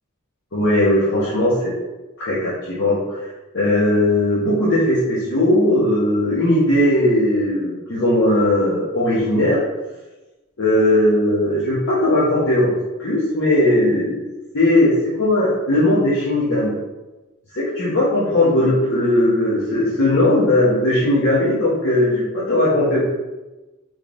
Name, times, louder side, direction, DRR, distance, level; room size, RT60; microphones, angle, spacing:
voice 1, 0.5-1.7 2.2-3.2 3.5-9.6 10.6-12.7 13.0-14.2 14.5-16.7 17.5-23.1, left 1 dB, 55° left, -9 dB, 0.8 m, -18 dB
3.6 x 3.1 x 2.5 m, 1.1 s
head